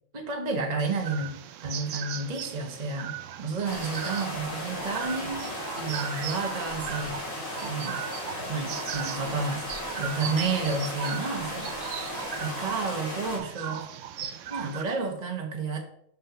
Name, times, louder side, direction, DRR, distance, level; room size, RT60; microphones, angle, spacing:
voice 1, 0.1-3.1 3.4-7.2 7.6-8.0 8.5-9.7 10.0-11.7 12.2-13.9 14.5-15.8, right 4 dB, 35° right, 3 dB, 1.1 m, -31 dB
sound 1, 0.8-14.8, right 10 dB, 70° right, 0.9 m, -38 dB
sound 2, 3.6-13.4, left 1 dB, 75° left, 3.0 m, -36 dB
6.8 x 5.4 x 5.1 m, 0.70 s
omnidirectional pair, 1.4 m